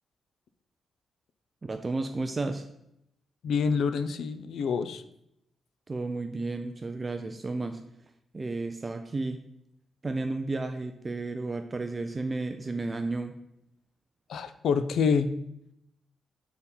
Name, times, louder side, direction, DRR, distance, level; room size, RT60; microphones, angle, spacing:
voice 1, 1.6-2.6 5.9-7.8 8.3-9.4 10.0-13.3, right 3 dB, 20° right, 6 dB, 0.4 m, -32 dB
voice 2, 3.4-5.0 14.3-15.3, left 5 dB, 70° left, 12 dB, 0.5 m, -27 dB
6.7 x 4.2 x 5.4 m, 0.78 s
wide cardioid pair, 160°, 0 cm